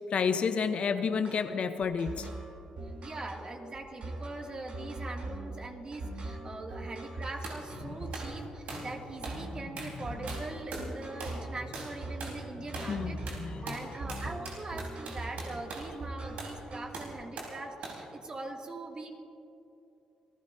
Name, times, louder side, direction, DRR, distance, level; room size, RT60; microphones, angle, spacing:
voice 1, 0.1-2.3 7.8-8.1 12.9-13.8, left 6 dB, 55° left, 9 dB, 0.8 m, -30 dB
sound 1, 1.2-17.1, right 2 dB, 60° right, 3.3 m, -41 dB
voice 2, 3.0-13.4 13.6-19.2, right 2 dB, 40° right, 1 dB, 2.4 m, -42 dB
sound 2, 7.4-7.6 8.1-8.3 8.7-8.9 9.2-9.4 9.8-10.0 10.3-10.9 11.2-11.4 11.7-11.9 12.2-12.4 12.7-13.0 13.3-15.9 16.4-16.6 16.9-17.6 17.8-18.0, right 3 dB, 75° right, 4.0 m, -41 dB
27.5 x 16.0 x 2.7 m, 2.9 s
supercardioid pair, 65°, 2 cm